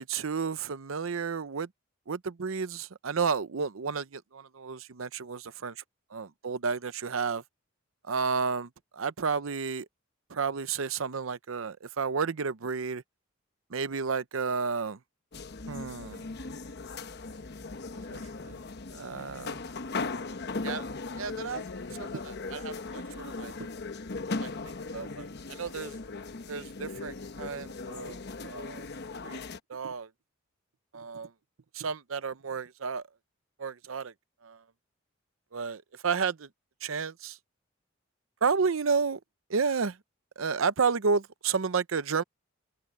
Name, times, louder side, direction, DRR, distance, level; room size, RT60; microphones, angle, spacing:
voice 1, 0.0-1.7 2.1-5.7 6.1-7.4 8.1-9.9 10.3-13.0 13.7-15.0 15.7-16.3 18.1-18.6 18.9-19.6 20.6-20.9 21.2-21.6 21.9-23.5 24.4-24.5 24.9-25.9 26.5-28.8 29.2-29.4 29.7-30.1 30.9-31.3 31.7-33.0 33.6-34.1 34.4-34.6 35.5-36.5 36.8-37.4 38.4-39.2 39.5-40.0 40.4-42.2, right 5 dB, 80° right, 0.7 m, -31 dB
sound 1, 15.3-29.6, left 3 dB, 55° left, 1.0 m, -38 dB
head